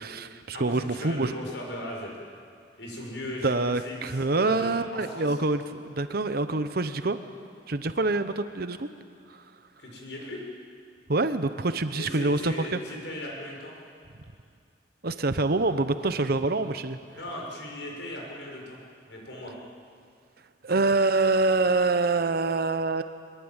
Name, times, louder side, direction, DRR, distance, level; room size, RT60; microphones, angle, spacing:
voice 1, 0.0-1.3 3.4-7.2 7.7-8.9 11.1-12.8 15.0-17.0 20.6-23.0, right 3 dB, 60° right, 10 dB, 0.9 m, -26 dB
voice 2, 0.5-2.1 2.8-5.4 9.8-10.4 11.9-13.7 17.2-18.8 19.0-19.5, left 1 dB, 85° left, -1 dB, 6.2 m, -37 dB
23.0 x 21.5 x 9.0 m, 2.3 s
head